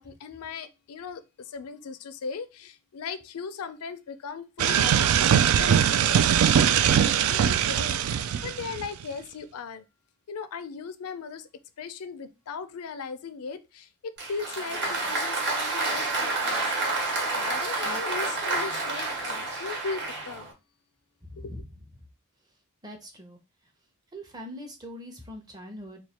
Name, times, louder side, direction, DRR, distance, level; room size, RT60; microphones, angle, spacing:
voice 1, 0.0-9.8 10.3-11.5 11.8-16.7 17.3-20.5 21.4-21.5, left 5 dB, 90° left, 0.4 m, -38 dB
sound 1, 4.6-9.0, right 9 dB, 75° right, 0.3 m, -21 dB
Applause, 14.2-20.5, right 3 dB, 55° right, 1.1 m, -29 dB
voice 2, 21.2-21.7 22.8-23.4 24.1-26.0, equal, 20° right, 0.7 m, -42 dB
3.1 x 2.4 x 4.2 m
head